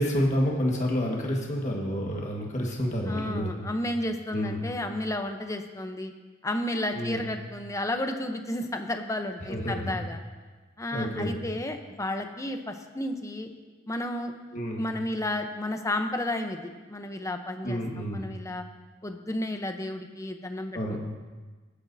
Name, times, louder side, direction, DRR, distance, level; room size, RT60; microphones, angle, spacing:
voice 1, 0.0-3.5 4.3-4.6 6.9-7.2 9.5-9.9 10.9-11.3 14.5-14.8 17.6-18.3 20.7-21.0, equal, 40° left, -1 dB, 1.6 m, -29 dB
voice 2, 3.1-6.1 6.4-10.2 10.8-13.5 13.9-18.6 19.0-21.0, left 1 dB, 15° left, 6 dB, 0.7 m, -32 dB
18.0 x 9.9 x 2.7 m, 1.3 s
head